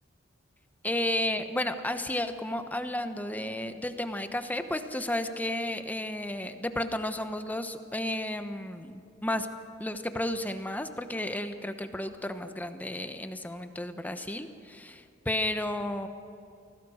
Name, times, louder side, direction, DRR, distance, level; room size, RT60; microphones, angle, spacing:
voice 1, 0.8-9.5 9.8-16.1, left 1 dB, 10° left, 8 dB, 1.0 m, -32 dB
25.5 x 17.5 x 6.4 m, 2.5 s
head